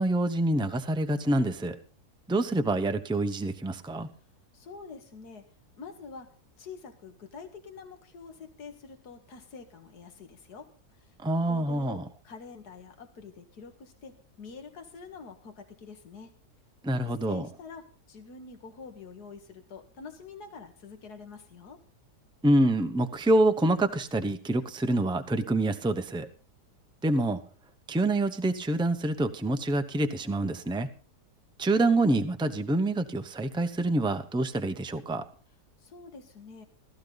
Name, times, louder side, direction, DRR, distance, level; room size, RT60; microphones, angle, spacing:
voice 1, 0.0-1.8 2.3-4.1 11.2-12.0 16.8-17.5 22.4-26.3 27.0-27.4 27.9-30.9 31.6-35.2, right 1 dB, 5° right, 8 dB, 0.5 m, -26 dB
voice 2, 4.5-5.5 5.8-6.3 6.6-10.7 11.5-16.3 16.9-21.8 35.8-36.7, left 5 dB, 80° left, 6 dB, 2.2 m, -46 dB
16.0 x 13.5 x 4.0 m, 0.39 s
omnidirectional pair, 1.7 m